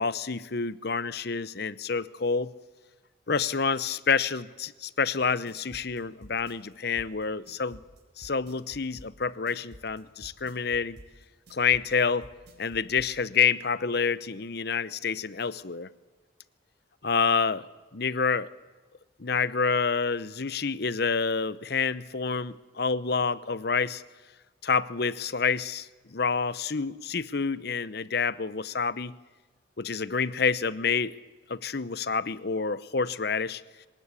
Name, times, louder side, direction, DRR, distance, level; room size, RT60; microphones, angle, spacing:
voice 1, 0.0-2.5 3.3-7.8 8.2-11.0 11.5-12.3 12.6-15.9 17.0-17.7 17.9-18.5 19.2-24.0 24.6-29.1 29.8-31.2 31.5-33.6, left 5 dB, 55° left, 17 dB, 0.8 m, -28 dB
sound 1, 5.2-13.1, equal, 55° right, 4.4 m, -50 dB
24.5 x 19.0 x 8.4 m, 1.3 s
head